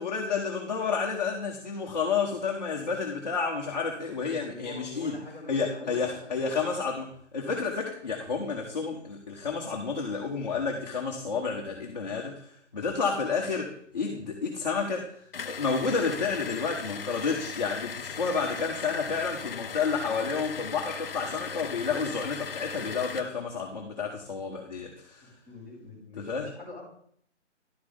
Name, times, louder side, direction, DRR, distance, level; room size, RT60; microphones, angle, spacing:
voice 1, 0.0-5.2 5.5-7.1 7.3-12.4 12.7-15.1 15.4-25.3 26.2-26.5, left 5 dB, 35° left, 0 dB, 1.1 m, -30 dB
voice 2, 4.3-6.7 25.2-26.8, left 2 dB, 10° right, -10 dB, 3.7 m, -45 dB
sound 1, 15.3-23.3, left 6 dB, 55° left, 0.6 m, -38 dB
11.5 x 5.8 x 3.4 m, 0.65 s
hypercardioid pair, 175°, 36 cm